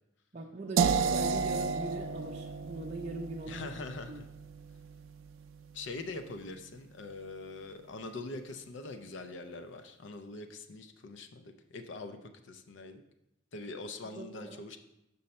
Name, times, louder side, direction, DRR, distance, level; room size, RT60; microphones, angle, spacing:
voice 1, 0.3-3.7 4.1-4.2 14.0-14.6, right 2 dB, 35° right, -3 dB, 0.5 m, -41 dB
sound 1, 0.8-6.7, right 5 dB, 85° right, 0.4 m, -33 dB
voice 2, 3.5-4.3 5.7-13.0 13.5-14.8, left 3 dB, 65° left, 8 dB, 0.5 m, -43 dB
6.6 x 5.5 x 4.1 m, 0.87 s
head